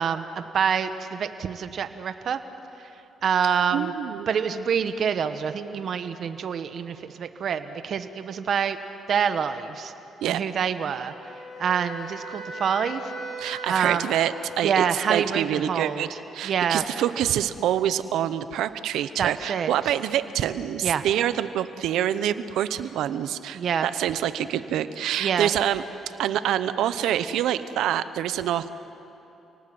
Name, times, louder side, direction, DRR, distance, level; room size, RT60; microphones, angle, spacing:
voice 1, 0.0-2.4 3.2-3.9 4.3-8.8 9.1-9.9 10.2-11.1 11.6-13.1 13.7-14.1 14.6-16.1 16.4-16.8 19.2-19.7 20.8-21.0 23.5-23.9 25.2-25.5, right 7 dB, 60° right, 9 dB, 1.2 m, -26 dB
voice 2, 3.7-4.3 10.2-10.4 13.4-25.8 26.2-28.7, right 11 dB, 85° right, 13 dB, 0.9 m, -26 dB
Wind instrument woodwind instrument, 11.1-15.2, right 1 dB, 55° left, 6.2 m, -39 dB
29.0 x 19.0 x 7.8 m, 3.0 s
cardioid pair, 90°, 0 cm